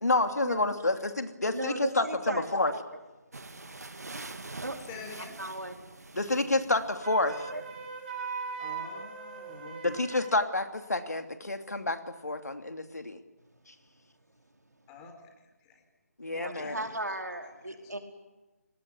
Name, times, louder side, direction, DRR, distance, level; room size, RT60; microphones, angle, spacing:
voice 1, 0.0-2.7 6.1-7.5 9.8-13.2 16.2-16.7, left 2 dB, 80° left, 7 dB, 2.8 m, -29 dB
voice 2, 1.5-2.4 2.7-2.8 4.6-4.8 5.4-5.7 7.5-7.6 16.3-18.0, right 1 dB, 90° right, 3 dB, 4.8 m, -35 dB
sound 1, 3.3-7.9, right 3 dB, 75° right, 2.3 m, -45 dB
voice 3, 4.9-5.3 8.6-10.0 14.9-15.8 16.5-16.9 17.4-17.5, left 4 dB, 15° left, 5 dB, 4.2 m, -47 dB
Wind instrument woodwind instrument, 7.0-10.4, right 5 dB, 35° right, 4.8 m, -39 dB
29.5 x 20.0 x 9.6 m, 1.1 s
figure-of-eight pair, 155°, 9 cm